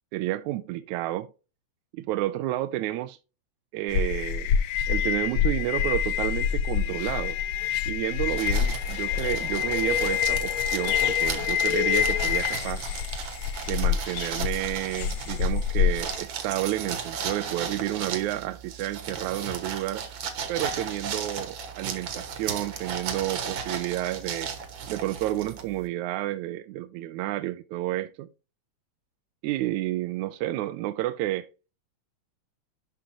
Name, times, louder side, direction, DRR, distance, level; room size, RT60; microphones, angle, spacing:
voice 1, 0.1-1.3 1.9-3.2 3.7-4.5 4.9-7.4 7.9-13.0 13.7-20.1 20.5-24.5 24.9-28.3 29.4-31.5, right 15 dB, 85° right, 1.9 m, -30 dB
sound 1, 3.9-16.2, left 9 dB, 90° left, 1.2 m, -26 dB
sound 2, 8.4-25.9, right 6 dB, 60° right, 2.1 m, -35 dB
11.5 x 5.0 x 2.9 m
omnidirectional pair, 3.3 m